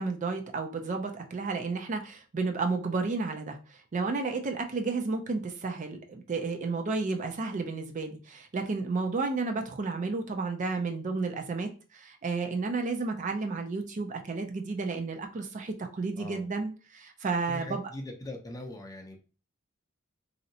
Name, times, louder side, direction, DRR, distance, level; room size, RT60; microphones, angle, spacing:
voice 1, 0.0-17.8, right 3 dB, 35° right, 4 dB, 0.4 m, -32 dB
voice 2, 17.5-19.2, left 1 dB, 15° left, 2 dB, 0.5 m, -41 dB
3.0 x 2.7 x 2.6 m, 0.35 s
head